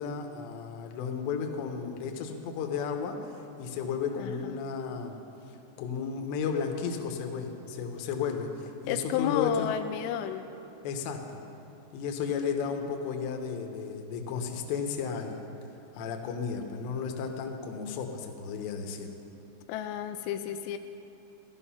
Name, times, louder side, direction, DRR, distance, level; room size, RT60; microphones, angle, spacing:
voice 1, 0.0-5.2 5.8-9.7 10.8-11.4 11.9-15.5 15.9-19.1, left 6 dB, 70° left, 3 dB, 3.0 m, -33 dB
voice 2, 4.2-4.6 8.9-10.5 19.7-20.8, left 10 dB, 90° left, 7 dB, 3.2 m, -32 dB
16.0 x 12.0 x 5.7 m, 3.0 s
omnidirectional pair, 5.8 m